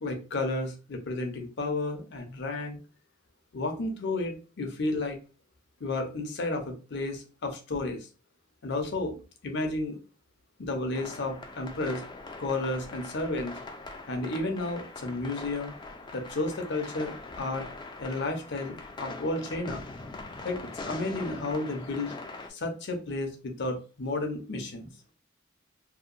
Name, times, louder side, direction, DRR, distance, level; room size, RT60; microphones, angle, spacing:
voice 1, 0.0-2.8 3.5-5.2 5.8-8.0 8.6-9.2 9.4-9.9 10.6-12.0 12.4-13.5 14.1-15.7 16.1-17.7 18.0-19.8 20.4-20.6 20.8-22.1 22.5-24.9, left 2 dB, 60° left, 4 dB, 0.6 m, -32 dB
sound 1, 10.9-22.5, left 3 dB, 25° left, 0.4 m, -42 dB
2.8 x 2.1 x 2.4 m, 0.33 s
head